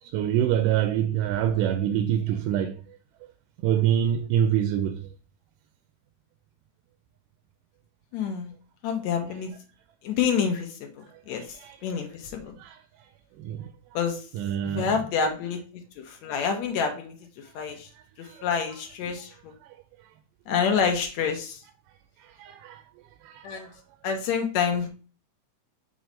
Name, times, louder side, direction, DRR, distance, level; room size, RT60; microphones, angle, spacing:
voice 1, 0.0-3.0 3.6-5.1 9.3-9.4 11.1-12.0 12.6-13.1 13.4-13.7 14.3-15.0 17.9-18.5 19.6-19.8 22.2-22.8 23.2-23.7, right 10 dB, 85° right, 2.2 m, -27 dB
voice 2, 8.1-8.5 8.8-9.5 10.0-10.9 11.3-11.4 11.8-12.5 14.0-14.2 14.7-15.6 16.1-17.1 17.6-17.9 18.4-19.3 20.5-21.6 23.4-23.7 24.0-24.9, left 6 dB, 70° left, 2.0 m, -27 dB
6.2 x 3.1 x 5.3 m
omnidirectional pair, 3.7 m